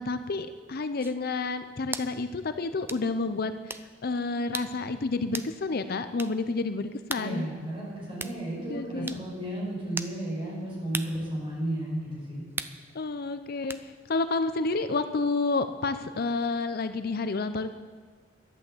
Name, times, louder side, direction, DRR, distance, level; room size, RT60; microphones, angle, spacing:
voice 1, 0.0-7.5 8.7-9.1 12.9-17.7, left 3 dB, 55° left, 10 dB, 0.6 m, -30 dB
sound 1, 1.0-1.2 1.9-2.1 2.9-3.0 3.7-3.9 4.5-4.8 5.3-5.5 6.2-6.4 7.1-7.3 8.2-8.4 9.1-9.2 10.0-10.2 10.9-11.2 12.6-12.8 13.7-13.8, right 3 dB, 10° right, 0.5 m, -36 dB
voice 2, 7.2-12.4, right 1 dB, 30° right, -5 dB, 5.7 m, -33 dB
12.0 x 11.0 x 7.8 m, 1.5 s
head